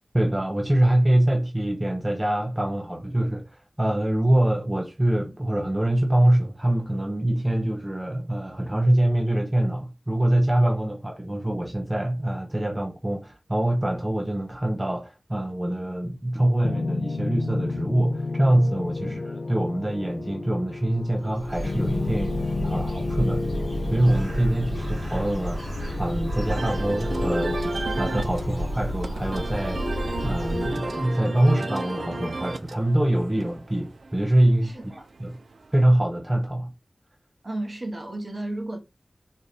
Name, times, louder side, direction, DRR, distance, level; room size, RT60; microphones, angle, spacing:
voice 1, 0.1-23.5 23.8-25.6 26.0-27.7 28.0-29.8 30.2-34.7 35.2-35.4 35.7-36.7, right 1 dB, 20° right, 0.6 m, -24 dB
sound 1, 16.6-32.3, left 3 dB, 55° left, 0.4 m, -32 dB
Bird, 21.1-31.1, equal, 70° right, 2.2 m, -31 dB
sound 2, 26.5-35.9, right 3 dB, 85° right, 0.5 m, -35 dB
voice 2, 34.6-35.1 37.4-38.8, right 1 dB, 40° right, 1.4 m, -33 dB
4.0 x 2.5 x 3.2 m
wide cardioid pair, 65°, 0 cm